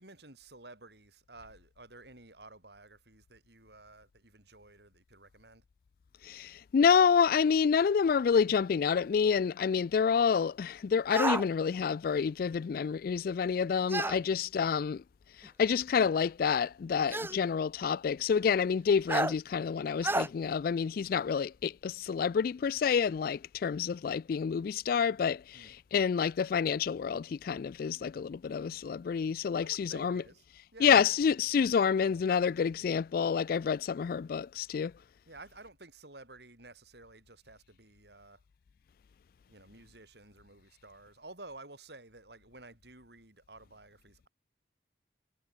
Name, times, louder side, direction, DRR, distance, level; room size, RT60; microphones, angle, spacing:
voice 1, 0.0-5.6 14.2-14.4 25.5-25.7 29.6-30.5 30.7-31.1 35.3-38.4 39.5-44.3, right 2 dB, 60° right, 6.4 m, -53 dB
voice 2, 6.2-15.0 15.4-30.2 30.8-34.9, left 6 dB, 50° left, 0.3 m, -28 dB
sound 1, 11.1-11.4 13.9-14.2 15.4-15.5 17.1-17.4 19.1-19.3 20.0-20.3, right 2 dB, 10° right, 1.0 m, -30 dB
head